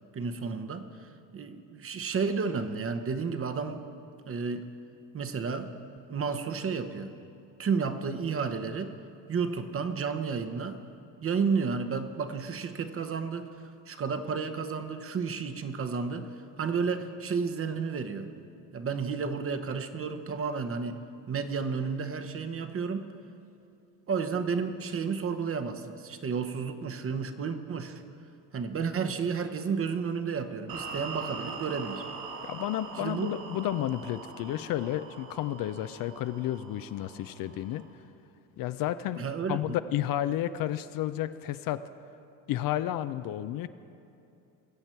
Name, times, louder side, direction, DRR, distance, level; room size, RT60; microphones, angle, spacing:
voice 1, 0.1-3.8 4.3-4.7 5.1-5.7 6.1-7.1 7.6-8.9 9.3-10.8 11.2-13.5 13.9-16.3 16.6-18.3 18.7-21.0 21.3-23.1 24.1-28.0 28.5-32.1 33.0-33.4 39.2-39.8, right 5 dB, 30° right, 8 dB, 0.9 m, -32 dB
sound 1, 30.7-37.9, right 4 dB, 55° right, 1.9 m, -42 dB
voice 2, 32.4-37.9 38.6-41.8 42.5-43.7, left 12 dB, 55° left, 13 dB, 0.5 m, -32 dB
21.0 x 8.0 x 4.5 m, 2.7 s
supercardioid pair, 85°, 42 cm